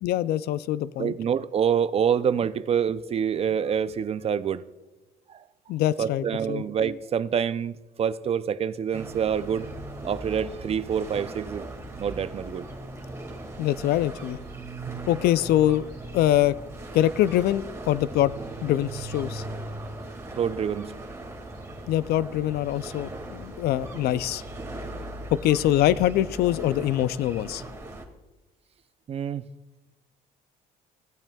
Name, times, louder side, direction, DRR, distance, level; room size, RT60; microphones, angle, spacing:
voice 1, 0.0-1.1 5.7-6.6 13.6-14.4 15.1-15.9 16.1-16.6 16.9-18.3 18.6-19.4 21.9-24.4 25.3-27.6, left 13 dB, 70° left, 0.4 m, -24 dB
voice 2, 1.0-4.6 5.3-5.4 6.0-9.7 10.0-11.7 12.0-12.7 20.4-20.9 29.1-29.5, right 8 dB, 35° right, 0.4 m, -26 dB
sound 1, 8.9-28.0, right 2 dB, 15° right, 2.0 m, -39 dB
16.0 x 8.7 x 2.3 m
cardioid pair, 110°, 17 cm